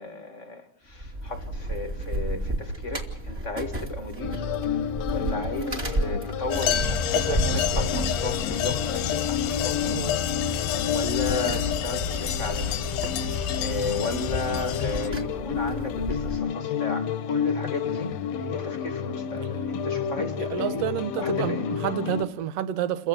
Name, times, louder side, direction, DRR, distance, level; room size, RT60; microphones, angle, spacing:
voice 1, 0.0-4.5 5.1-10.2 10.4-20.8 21.2-21.6, left 3 dB, 35° left, 1.1 m, -34 dB
sound 1, 0.9-16.4, right 1 dB, 20° right, 2.5 m, -33 dB
sound 2, 4.2-22.2, left 8 dB, 65° left, 1.8 m, -31 dB
sound 3, 6.5-15.1, left 10 dB, 90° left, 3.0 m, -29 dB
voice 2, 7.1-7.7 9.8-10.2 19.5-19.6 20.4-23.1, right 10 dB, 65° right, 1.7 m, -30 dB
29.0 x 15.5 x 7.6 m
omnidirectional pair, 4.1 m